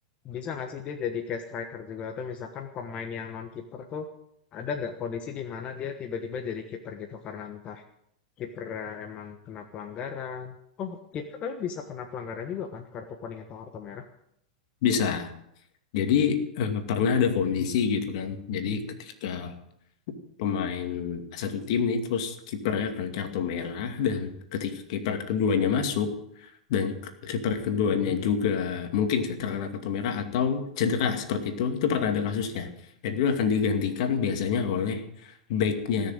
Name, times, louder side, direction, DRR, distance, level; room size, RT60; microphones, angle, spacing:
voice 1, 0.2-4.1 4.5-7.8 8.4-14.0 27.9-28.2, left 6 dB, 35° left, 5 dB, 1.3 m, -36 dB
voice 2, 14.8-15.3 15.9-19.5 20.4-26.1 26.7-26.9 27.2-32.7 33.0-36.1, left 6 dB, 60° left, 7 dB, 2.3 m, -27 dB
18.0 x 6.8 x 9.0 m, 0.76 s
hypercardioid pair, 110°, 4 cm